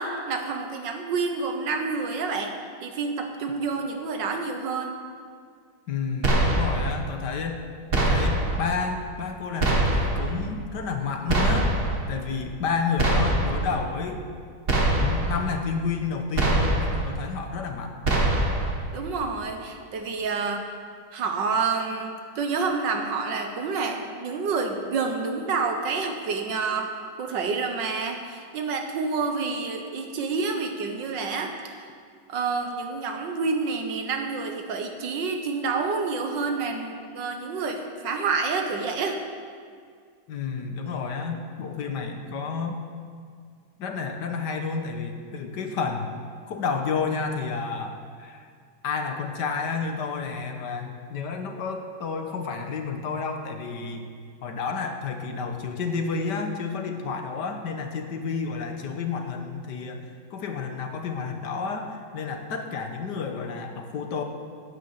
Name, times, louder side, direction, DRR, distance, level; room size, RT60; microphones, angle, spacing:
voice 1, 0.0-5.0 18.9-20.7 21.1-31.8 32.3-39.2, right 4 dB, 75° right, 4 dB, 1.9 m, -28 dB
voice 2, 5.9-7.6 7.9-11.8 12.1-14.2 15.0-18.0 40.3-42.8 43.8-46.1 46.5-48.5 48.8-54.1 54.4-64.2, left 5 dB, 70° left, 5 dB, 1.7 m, -30 dB
sound 1, 6.2-6.9 7.9-8.6 9.6-10.3 11.3-12.0 13.0-13.7 14.7-15.4 16.4-17.1 18.0-18.7, right 2 dB, 35° right, 1.6 m, -23 dB
9.7 x 9.6 x 8.0 m, 2.1 s
omnidirectional pair, 2.0 m